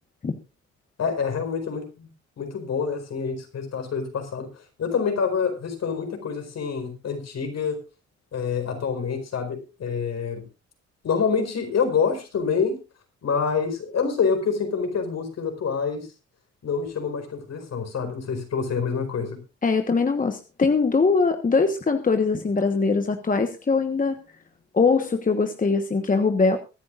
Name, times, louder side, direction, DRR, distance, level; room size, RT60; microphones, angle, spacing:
voice 1, 1.0-2.1 2.4-4.5 4.8-7.8 8.3-10.4 11.0-12.8 13.2-16.1 16.6-19.4, left 6 dB, 60° left, 5 dB, 4.5 m, -26 dB
voice 2, 19.6-24.2 24.7-26.6, left 4 dB, 25° left, 7 dB, 1.3 m, -22 dB
23.5 x 10.0 x 2.5 m, 0.30 s
cardioid pair, 90°, 30 cm